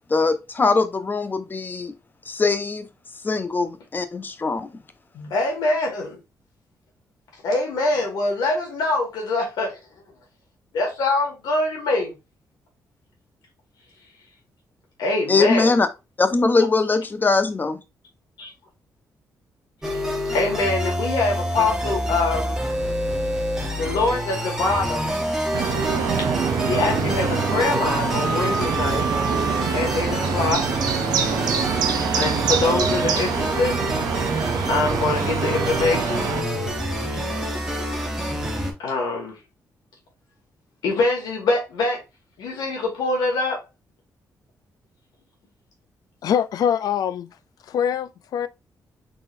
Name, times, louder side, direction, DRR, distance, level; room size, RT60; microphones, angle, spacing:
voice 1, 0.1-1.9 2.3-2.9 3.2-4.7 15.3-15.9 16.2-17.8, left 3 dB, 30° left, 0.6 m, -21 dB
voice 2, 5.1-6.2 7.4-9.7 10.7-12.1 15.0-15.7 18.4-18.5 20.3-22.6 23.7-25.1 26.6-29.1 29.7-30.7 32.1-33.8 34.7-36.3 38.4-39.4 40.8-42.0 42.4-43.6, left 3 dB, 90° left, 1.9 m, -24 dB
sound 1, 19.8-38.7, equal, 5° right, 1.1 m, -27 dB
sound 2, 25.5-36.4, right 7 dB, 80° right, 0.6 m, -25 dB
voice 3, 46.2-47.3 47.7-48.5, left 8 dB, 70° left, 0.4 m, -23 dB
4.0 x 3.8 x 2.6 m
cardioid pair, 100°, 7 cm